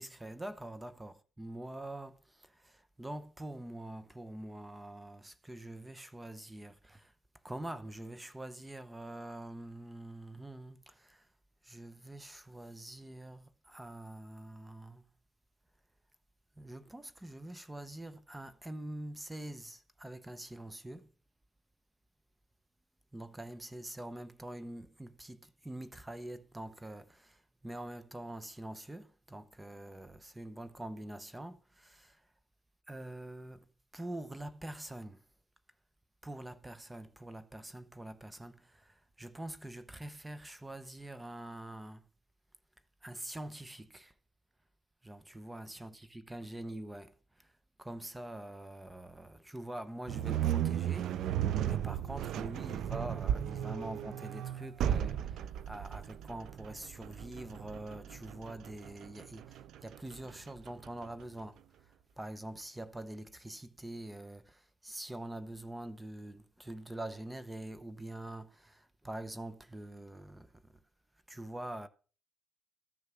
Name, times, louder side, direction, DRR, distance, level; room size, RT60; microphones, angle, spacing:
voice 1, 0.0-7.1 7.4-11.2 11.6-15.0 16.6-21.1 23.1-27.4 27.6-32.2 32.9-33.6 33.9-35.2 36.2-42.0 43.0-44.1 45.0-47.1 47.8-51.3 51.6-61.6 62.2-70.5 71.3-71.9, right 1 dB, 10° right, 0.8 m, -45 dB
sound 1, 50.1-61.2, right 10 dB, 75° right, 0.5 m, -35 dB
13.5 x 6.6 x 6.0 m
cardioid pair, 90°, 0 cm